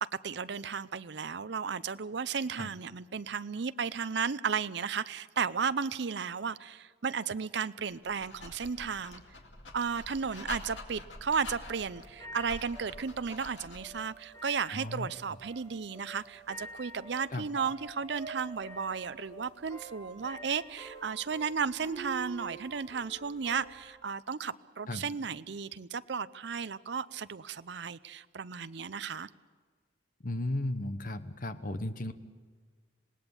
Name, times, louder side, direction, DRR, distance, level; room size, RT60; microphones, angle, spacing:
voice 1, 0.0-9.2 9.7-29.3, right 6 dB, 60° right, 15 dB, 0.6 m, -34 dB
Dog, 7.9-14.0, left 2 dB, 70° left, 2.3 m, -47 dB
sound 1, 11.4-23.8, right 2 dB, 15° left, 7.5 m, -48 dB
voice 2, 14.7-15.1 17.3-17.5 24.9-25.1 30.2-32.1, left 1 dB, 45° left, 10 dB, 1.0 m, -35 dB
26.5 x 18.5 x 7.1 m, 1.5 s
head